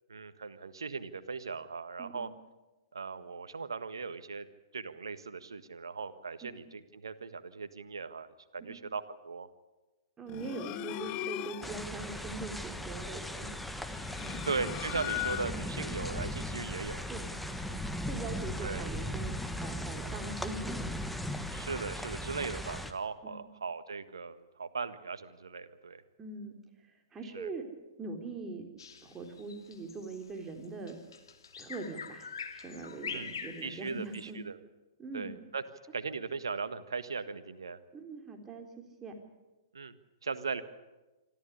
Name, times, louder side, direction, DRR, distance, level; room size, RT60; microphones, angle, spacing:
voice 1, 0.1-2.3 2.9-4.5 4.7-9.5 14.5-17.0 18.6-18.9 21.5-26.0 27.3-27.5 33.1-33.3 33.6-34.6 35.1-35.6 35.9-37.8 39.7-39.9 40.2-40.6, right 4 dB, 80° right, 12 dB, 1.5 m, -38 dB
voice 2, 2.0-2.3 6.4-6.5 8.6-8.8 10.2-13.5 14.2-14.5 17.1-17.3 17.6-20.9 23.2-23.5 26.2-26.6 27.1-27.6 28.0-28.7 29.0-31.0 31.6-34.4 35.0-35.3 37.9-39.1, right 3 dB, 20° right, 3 dB, 3.9 m, -42 dB
sound 1, 10.3-11.9 13.7-15.8, left 17 dB, 35° left, 0.9 m, -38 dB
sound 2, 11.6-22.9, left 1 dB, ahead, 1.5 m, -38 dB
Bird vocalization bird call bird song, 28.8-34.3, left 6 dB, 70° left, 2.5 m, -44 dB
26.0 x 14.0 x 10.0 m, 1.1 s
figure-of-eight pair, 115°, 2 cm